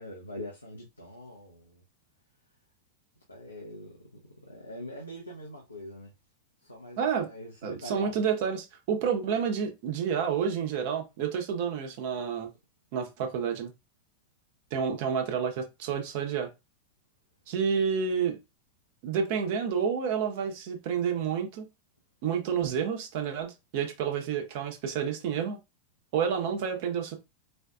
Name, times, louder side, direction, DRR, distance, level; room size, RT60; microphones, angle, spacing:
voice 1, 0.0-1.8 3.3-4.0 4.4-6.1 6.6-8.2, equal, 85° left, 0.6 m, -43 dB
voice 2, 7.0-7.3 7.6-12.5 12.9-13.7 14.7-16.5 17.5-18.4 19.0-21.7 22.2-25.6 26.1-27.1, right 7 dB, 50° right, 0.8 m, -29 dB
4.2 x 2.4 x 2.4 m
figure-of-eight pair, 90°, 0 cm